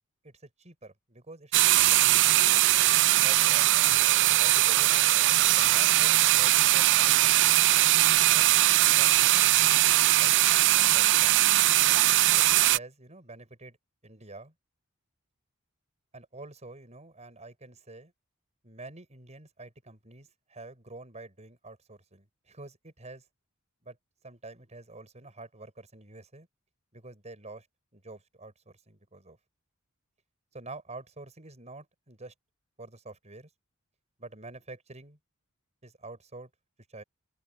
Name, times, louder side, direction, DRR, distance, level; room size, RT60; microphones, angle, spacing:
voice 1, 0.2-2.4 3.2-3.7 4.4-5.1 5.5-7.7 8.2-8.4 8.9-9.6 10.2-10.4 10.9-11.3 12.4-13.8 14.0-14.5 16.1-18.1 18.6-23.2 23.8-24.0 24.2-26.5 26.9-27.7 27.9-29.4 30.5-32.3 32.8-33.5 34.2-35.2 35.8-36.5 36.9-37.0, right 2 dB, 30° right, 6.1 m, -47 dB
sound 1, 1.5-12.8, right 15 dB, 55° right, 0.4 m, -21 dB
open air
head